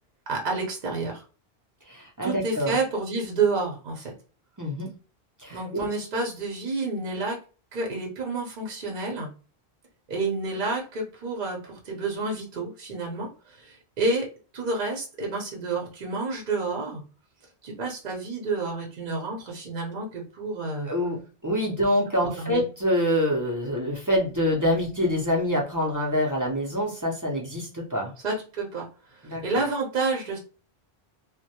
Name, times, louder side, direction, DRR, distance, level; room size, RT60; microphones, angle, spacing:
voice 1, 0.3-1.2 2.2-4.1 5.5-7.4 7.7-9.3 10.1-14.3 14.5-17.0 17.6-20.9 22.2-22.6 28.2-30.4, right 3 dB, 50° right, 0 dB, 0.8 m, -29 dB
voice 2, 1.9-2.8 4.6-5.0 5.4-5.9 20.8-28.1 29.2-29.6, equal, 25° right, -3 dB, 0.4 m, -26 dB
2.1 x 2.1 x 2.8 m, 0.36 s
omnidirectional pair, 1.1 m